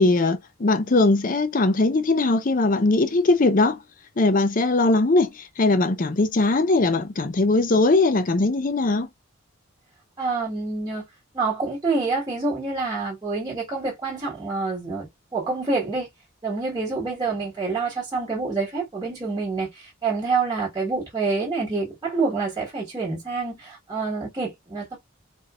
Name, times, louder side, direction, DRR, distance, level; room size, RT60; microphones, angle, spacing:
voice 1, 0.0-3.8 4.2-9.1, left 2 dB, 40° left, 0.5 m, -20 dB
voice 2, 10.2-11.0 11.3-15.1 15.3-16.1 16.4-25.0, right 3 dB, 20° right, 1.5 m, -27 dB
4.2 x 2.6 x 2.4 m
head